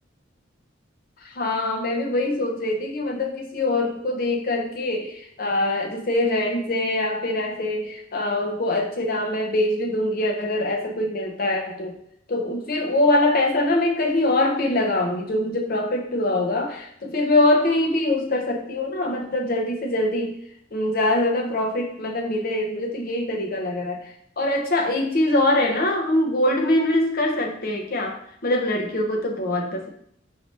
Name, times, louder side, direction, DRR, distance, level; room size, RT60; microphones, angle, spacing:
voice 1, 1.2-12.0 12.3-20.3 20.7-28.2 28.4-29.9, left 1 dB, 50° left, 1 dB, 0.7 m, -23 dB
4.5 x 2.8 x 3.3 m, 0.67 s
head